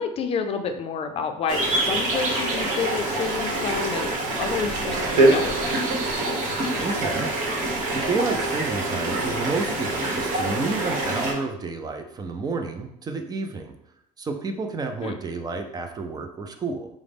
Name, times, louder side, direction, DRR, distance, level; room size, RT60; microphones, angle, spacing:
voice 1, 0.0-5.0 5.3-5.6 15.0-15.2, left 6 dB, 40° left, 6 dB, 0.4 m, -29 dB
sound 1, 1.5-11.3, right 2 dB, 65° right, 1.0 m, -25 dB
voice 2, 6.8-7.3 7.9-13.7 14.2-16.9, right 3 dB, 25° right, 6 dB, 0.4 m, -30 dB
4.8 x 2.0 x 3.4 m, 0.76 s
cardioid pair, 120°, 15 cm